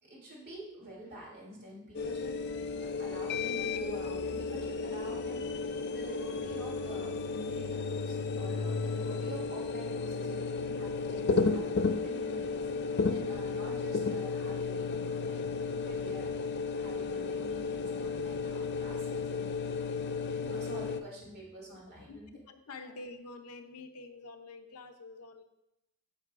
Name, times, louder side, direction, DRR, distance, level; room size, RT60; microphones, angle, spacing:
voice 1, 0.0-2.4 2.8-5.5 5.9-15.4 15.8-16.4 16.7-19.6 20.1-22.3 22.8-22.9, right 1 dB, 45° right, -4 dB, 2.7 m, -47 dB
sound 1, 1.9-21.0, left 4 dB, 50° left, 0.4 m, -33 dB
voice 2, 22.5-25.4, left 3 dB, 85° left, 7 dB, 0.7 m, -47 dB
9.4 x 6.4 x 2.5 m, 0.87 s
head